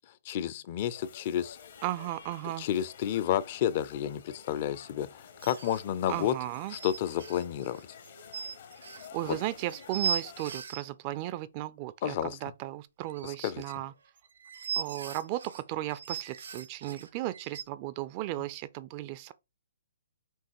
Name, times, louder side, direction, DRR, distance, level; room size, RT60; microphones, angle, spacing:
voice 1, 0.3-1.6 2.6-6.3 6.7-7.8 9.3-9.4 12.0-12.4 13.2-13.6, left 11 dB, 40° left, 0.4 m, -31 dB
sound 1, 0.8-10.5, left 6 dB, 55° left, 0.8 m, -51 dB
voice 2, 1.8-2.7 6.1-6.8 9.1-13.9 14.8-19.3, right 15 dB, 35° right, 0.3 m, -35 dB
sound 2, 2.2-2.3 2.5-2.7 5.4-10.8 13.1-17.6, right 6 dB, 70° right, 0.7 m, -38 dB
4.5 x 3.0 x 3.0 m
hypercardioid pair, 135°, 0 cm